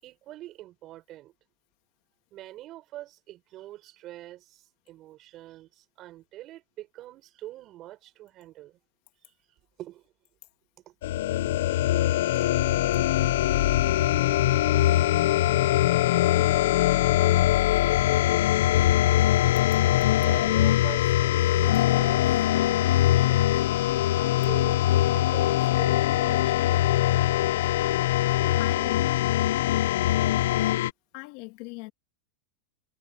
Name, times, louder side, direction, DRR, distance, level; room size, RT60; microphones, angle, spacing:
voice 1, 0.0-1.3 2.3-8.8 9.2-9.3 9.8-10.1 10.8-11.0 11.8-12.0 12.3-12.8 14.6-15.3 20.2-23.7 24.2-27.2 28.4-29.0, right 15 dB, 35° right, 6.8 m, -44 dB
sound 1, 11.0-30.9, left 14 dB, 75° left, 0.6 m, -22 dB
voice 2, 28.6-29.1 31.1-31.9, left 26 dB, 55° left, 2.7 m, -40 dB
supercardioid pair, 140°, 0 cm